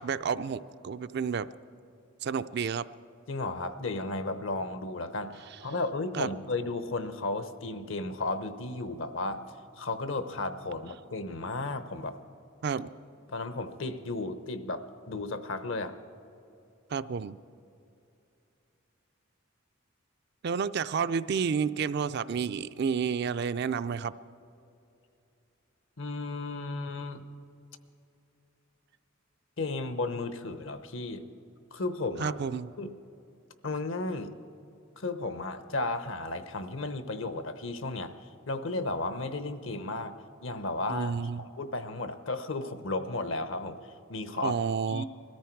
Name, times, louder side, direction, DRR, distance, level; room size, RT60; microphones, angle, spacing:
voice 1, 0.0-1.5 2.2-2.9 6.1-6.3 12.6-12.9 16.9-17.4 20.4-24.1 32.2-32.7 40.9-41.4 44.4-45.0, right 6 dB, 50° right, 13 dB, 0.4 m, -30 dB
voice 2, 3.3-9.5 9.8-12.2 13.3-16.0 26.0-27.2 29.6-31.3 31.7-32.3 32.8-32.9 33.6-34.3 35.0-38.2 38.5-40.1 40.4-41.2 41.6-44.5 44.9-45.1, left 2 dB, 65° left, 10 dB, 0.9 m, -34 dB
21.0 x 14.0 x 4.6 m, 2.7 s
head